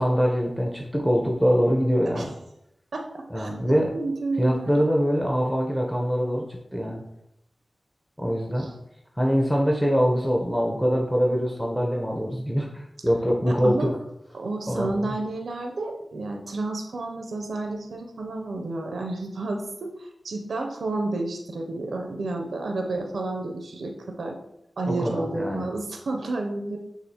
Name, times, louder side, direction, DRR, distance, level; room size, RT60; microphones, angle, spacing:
voice 1, 0.0-2.3 3.3-3.9 4.4-7.0 8.2-8.7 9.2-13.9 14.7-15.2 24.8-25.6, equal, 5° left, -1 dB, 0.7 m, -24 dB
voice 2, 2.9-4.8 8.6-8.7 13.5-13.9 14.3-24.4 24.8-26.8, right 2 dB, 85° right, 3 dB, 0.4 m, -31 dB
6.4 x 2.4 x 2.8 m, 0.82 s
cardioid pair, 45°, 0 cm